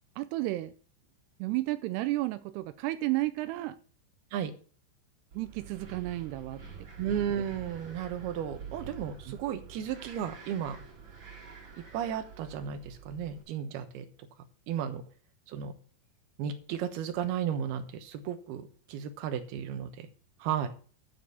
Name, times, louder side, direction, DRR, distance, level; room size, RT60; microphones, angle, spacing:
voice 1, 0.2-0.7 1.4-3.8 5.3-6.9 9.3-9.4, right 18 dB, 85° right, 11 dB, 2.3 m, -32 dB
Wind, 5.3-13.4, right 6 dB, 40° right, 4.2 m, -47 dB
voice 2, 7.0-10.8 11.9-14.1 14.7-15.0 15.5-15.7 16.4-20.1 20.4-20.7, right 9 dB, 70° right, 7 dB, 2.8 m, -34 dB
11.0 x 4.8 x 7.0 m, 0.41 s
omnidirectional pair, 5.4 m